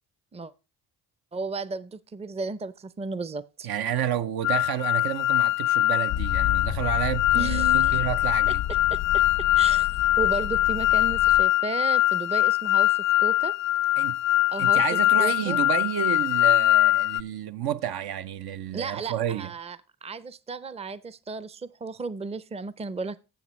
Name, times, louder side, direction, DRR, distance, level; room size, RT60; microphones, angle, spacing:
voice 1, 1.3-3.7 7.3-8.0 8.5-8.6 8.9-9.2 9.6-9.9 10.2-13.6 14.5-14.8 15.2-15.6 18.7-23.2, right 4 dB, 15° right, 0.5 m, -34 dB
voice 2, 3.6-8.6 14.0-14.2 14.6-19.5, right 10 dB, 65° right, 0.7 m, -30 dB
sound 1, 4.4-17.2, left 15 dB, 45° left, 0.5 m, -22 dB
Motor vehicle (road), 6.1-11.4, left 11 dB, 80° left, 0.8 m, -32 dB
13.0 x 7.1 x 3.1 m
supercardioid pair, 55°, 41 cm